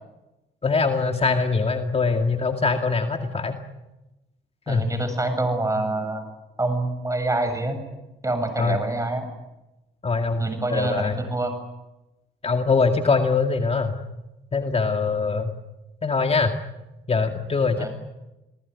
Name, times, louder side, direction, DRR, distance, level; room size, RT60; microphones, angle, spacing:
voice 1, 0.6-3.6 4.7-4.8 8.6-8.8 10.0-11.2 12.4-13.9 14.5-15.5 16.0-16.5 17.1-17.9, left 4 dB, 30° left, 5 dB, 2.2 m, -23 dB
voice 2, 4.7-6.3 6.6-7.8 8.2-9.3 10.4-11.5 17.8-17.9, right 2 dB, 15° right, 7 dB, 7.6 m, -26 dB
27.0 x 19.0 x 9.7 m, 1.0 s
cardioid pair, 90°, 20 cm